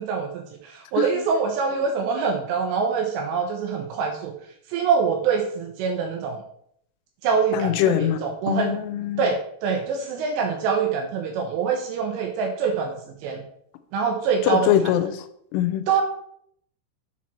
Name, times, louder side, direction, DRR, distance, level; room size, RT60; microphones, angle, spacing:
voice 1, 0.0-4.3 4.7-6.4 7.2-8.7 9.2-13.0 13.2-13.4 13.9-14.9 15.9-16.0, right 6 dB, 85° right, 4 dB, 2.6 m, -25 dB
voice 2, 7.5-8.2 8.5-9.3 14.4-15.2 15.5-15.9, left 11 dB, 85° left, 10 dB, 3.1 m, -23 dB
7.1 x 4.6 x 4.2 m, 0.69 s
omnidirectional pair, 5.6 m